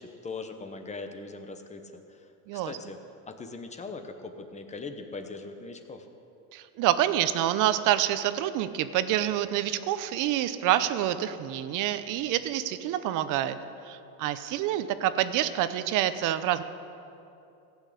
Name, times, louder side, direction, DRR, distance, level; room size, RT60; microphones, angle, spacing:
voice 1, 0.0-2.3 2.5-3.0 3.3-6.1, left 3 dB, 15° left, 6 dB, 0.9 m, -40 dB
voice 2, 6.5-13.6 13.9-16.6, right 12 dB, 50° right, 12 dB, 0.8 m, -27 dB
15.5 x 6.3 x 8.5 m, 2.7 s
supercardioid pair, 130°, 40 cm